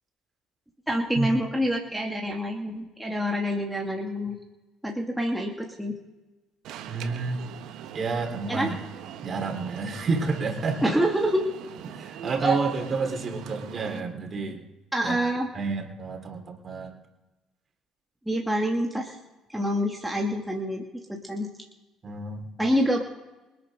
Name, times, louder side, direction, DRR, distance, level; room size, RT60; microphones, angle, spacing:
voice 1, 0.9-4.4 4.8-6.0 8.5-8.7 10.8-11.4 12.4-12.6 14.9-15.5 18.3-19.2 19.5-21.5 22.6-23.0, equal, 5° right, -1 dB, 2.5 m, -26 dB
Alarm, 6.6-14.0, right 10 dB, 65° right, 1.3 m, -42 dB
voice 2, 6.9-7.4 7.9-8.8 9.2-10.9 11.8-14.6 15.0-15.2 15.5-17.0 22.0-22.5, right 4 dB, 40° right, 2 dB, 4.1 m, -29 dB
27.5 x 9.5 x 3.8 m, 1.1 s
hypercardioid pair, 55°, 0 cm